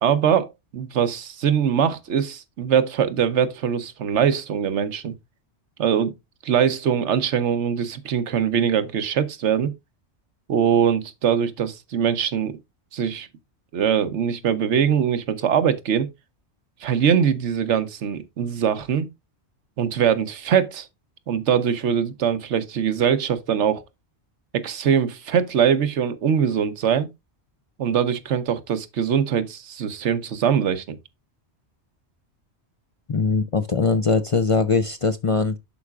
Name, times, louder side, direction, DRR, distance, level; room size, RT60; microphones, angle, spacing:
voice 1, 0.0-5.1 5.8-6.1 6.4-9.7 10.5-12.6 12.9-13.3 13.7-16.1 16.8-19.1 19.8-20.9 21.3-23.8 24.5-27.1 27.8-31.0, right 8 dB, 85° right, 1.1 m, -22 dB
voice 2, 33.1-35.6, left 4 dB, 45° left, 0.4 m, -21 dB
11.0 x 4.8 x 2.4 m
omnidirectional pair, 1.1 m